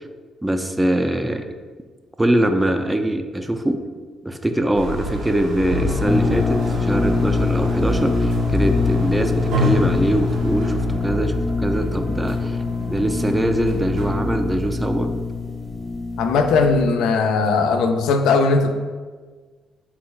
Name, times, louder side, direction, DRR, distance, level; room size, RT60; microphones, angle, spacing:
voice 1, 0.4-1.5 2.2-3.8 4.2-12.6 12.9-15.1, right 1 dB, 10° right, 6 dB, 0.3 m, -22 dB
sound 1, 4.7-14.2, left 2 dB, 90° right, 0.7 m, -28 dB
sound 2, 6.0-16.9, left 3 dB, 15° left, 0.7 m, -24 dB
voice 2, 16.2-18.7, left 4 dB, 90° left, 6 dB, 0.3 m, -18 dB
3.8 x 2.1 x 4.4 m, 1.4 s
cardioid pair, 90°, 0 cm